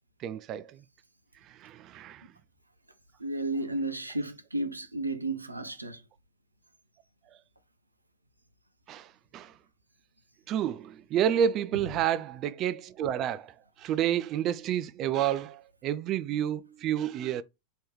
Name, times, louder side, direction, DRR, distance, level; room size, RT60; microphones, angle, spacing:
voice 1, 0.2-0.8 1.4-2.3 8.9-9.5 10.5-17.4, right 10 dB, 35° right, 0.3 m, -30 dB
voice 2, 3.2-6.0, right 2 dB, 85° right, 0.6 m, -33 dB
3.2 x 3.0 x 4.4 m
figure-of-eight pair, 90°, 0 cm